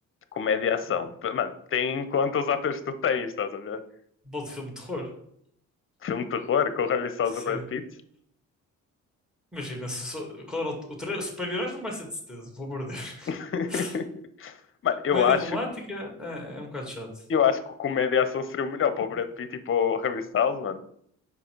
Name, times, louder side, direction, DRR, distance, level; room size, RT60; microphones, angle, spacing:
voice 1, 0.3-3.8 6.0-7.8 13.3-14.0 14.4-14.6 14.8-15.4 17.3-20.8, left 7 dB, 45° left, 11 dB, 0.7 m, -26 dB
voice 2, 4.3-5.1 7.3-7.6 9.5-13.3 13.7-14.0 15.1-17.2, left 1 dB, ahead, 0 dB, 1.9 m, -34 dB
5.5 x 3.9 x 4.5 m, 0.67 s
cardioid pair, 90°, 30 cm